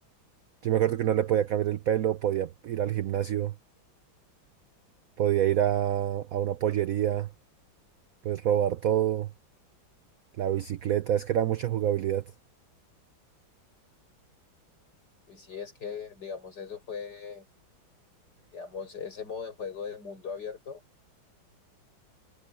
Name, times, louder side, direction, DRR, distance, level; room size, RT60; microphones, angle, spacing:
voice 1, 0.6-3.5 5.2-7.3 8.2-9.3 10.4-12.2, right 11 dB, 65° right, 0.8 m, -26 dB
voice 2, 15.3-17.5 18.5-20.8, left 6 dB, 55° left, 6.9 m, -39 dB
omnidirectional pair, 2.2 m